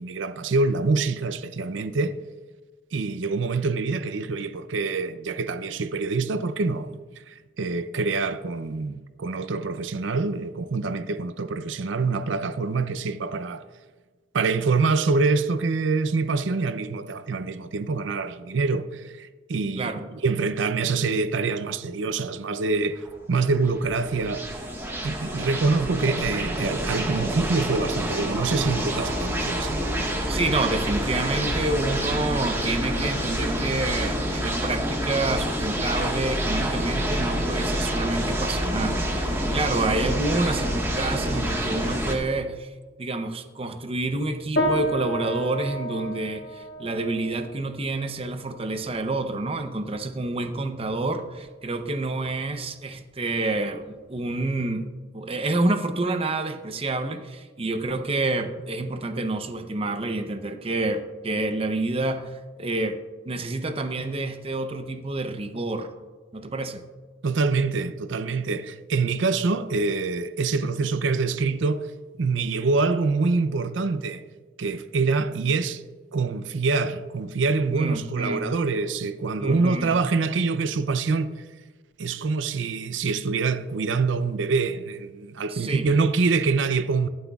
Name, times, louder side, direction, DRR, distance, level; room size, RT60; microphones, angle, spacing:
voice 1, 0.0-2.1 2.9-7.0 7.3-13.6 14.3-23.0 23.3-24.4 25.0-29.8 67.2-71.8 72.2-74.2 74.6-75.8 76.1-81.3 82.0-87.1, right 4 dB, 80° right, 0.5 m, -25 dB
sound 1, 23.0-42.1, equal, 15° right, 1.4 m, -27 dB
voice 2, 30.3-42.7 43.0-54.9 55.1-62.3 62.6-63.0 63.3-65.9 66.3-66.8 77.7-78.5 79.4-79.9 85.5-85.9, right 2 dB, 30° right, 0.7 m, -28 dB
sound 2, 44.6-54.2, equal, 80° left, 2.8 m, -34 dB
22.0 x 7.7 x 2.4 m
head